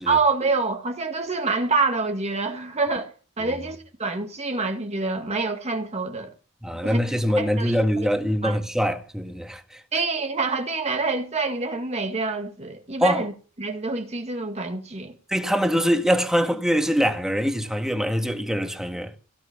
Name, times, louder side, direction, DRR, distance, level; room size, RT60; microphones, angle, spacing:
voice 1, 0.1-6.3 6.8-7.0 7.4-8.1 8.4-8.6 9.9-13.3 13.6-15.1, right 3 dB, 30° right, 1.7 m, -26 dB
voice 2, 6.6-9.8 13.0-13.2 15.3-19.1, equal, ahead, 1.7 m, -23 dB
16.5 x 7.9 x 7.2 m
head